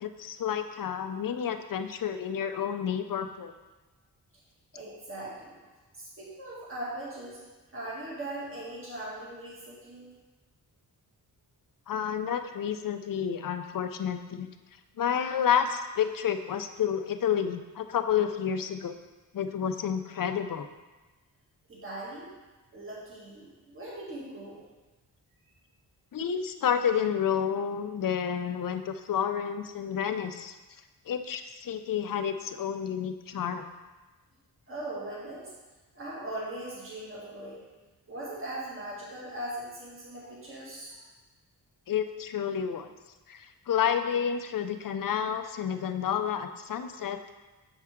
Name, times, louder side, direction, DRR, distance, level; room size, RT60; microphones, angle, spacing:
voice 1, 0.0-3.5 11.9-14.5 15.0-19.0 19.3-20.7 26.1-30.5 31.1-33.6 41.9-42.9 43.3-47.3, left 8 dB, 55° left, 8 dB, 0.5 m, -30 dB
voice 2, 4.7-5.6 6.0-7.4 7.7-10.1 21.7-22.3 22.7-24.6 34.7-35.5 35.9-37.6 38.1-41.0, right 1 dB, 35° right, -6 dB, 1.8 m, -39 dB
7.2 x 5.6 x 3.6 m, 1.2 s
wide cardioid pair, 150°, 39 cm